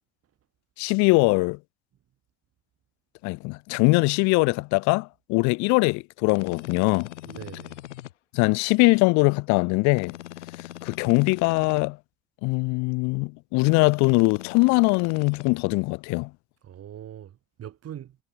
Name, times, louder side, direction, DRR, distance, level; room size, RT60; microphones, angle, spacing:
voice 1, 0.8-1.6 3.2-7.1 8.3-10.1 10.8-12.0 12.4-16.3, left 28 dB, 50° left, 0.5 m, -22 dB
sound 1, 6.2-8.1 9.9-11.8 13.6-15.5, left 14 dB, 75° left, 1.7 m, -41 dB
voice 2, 7.2-7.8 16.6-18.2, right 10 dB, 40° right, 2.1 m, -41 dB
figure-of-eight pair, 60°, 36 cm